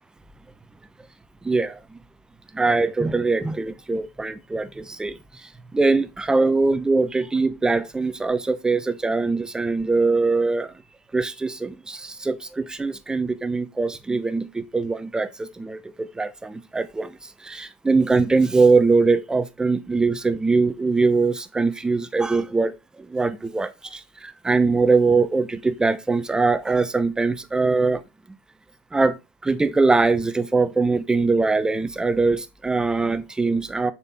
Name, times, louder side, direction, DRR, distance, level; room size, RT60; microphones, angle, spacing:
voice 1, 1.4-2.0 2.5-10.7 11.1-28.0 28.9-29.2 29.4-33.9, right 3 dB, 15° right, 0.8 m, -22 dB
6.9 x 4.5 x 4.2 m
supercardioid pair, 100°, 5 cm